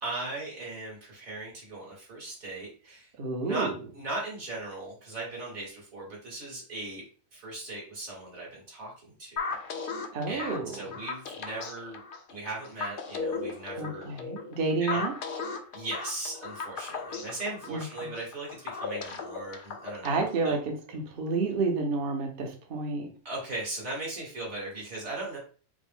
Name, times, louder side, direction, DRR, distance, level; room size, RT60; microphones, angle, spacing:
voice 1, 0.0-3.1 3.4-7.0 7.3-9.9 10.3-12.0 12.3-14.1 14.8-15.0 15.3-20.6 23.3-25.4, right 2 dB, 75° right, -4 dB, 2.2 m, -38 dB
voice 2, 3.2-3.7 10.1-10.8 13.8-15.1 17.7-17.8 20.0-23.1, right 3 dB, 50° right, 3 dB, 0.8 m, -30 dB
sound 1, 9.4-20.4, left 4 dB, 60° left, 0.5 m, -37 dB
5.1 x 2.1 x 3.3 m, 0.38 s
omnidirectional pair, 1.5 m